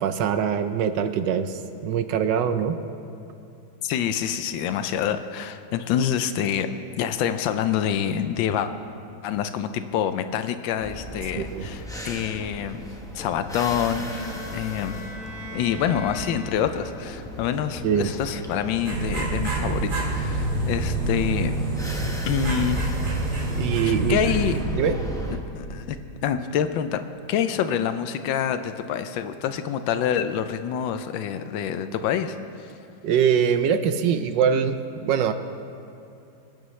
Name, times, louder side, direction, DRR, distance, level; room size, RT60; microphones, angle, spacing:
voice 1, 0.0-2.8 11.3-11.7 17.8-18.1 23.6-24.2 24.7-24.9 33.0-34.7 35.0-35.3, right 8 dB, 75° right, 9 dB, 1.2 m, -23 dB
voice 2, 3.8-6.7 7.0-8.7 9.2-12.9 13.1-15.0 15.5-21.5 22.3-23.0 23.8-24.6 25.3-27.0 27.3-32.7, left 9 dB, 75° left, 10 dB, 1.3 m, -26 dB
sound 1, 10.8-25.4, equal, 5° left, 0.3 m, -37 dB
Bowed string instrument, 13.8-17.0, equal, 50° left, 4.0 m, -40 dB
sound 2, 18.8-24.6, right 2 dB, 50° right, 2.7 m, -27 dB
23.5 x 9.1 x 3.2 m, 2.6 s
omnidirectional pair, 2.2 m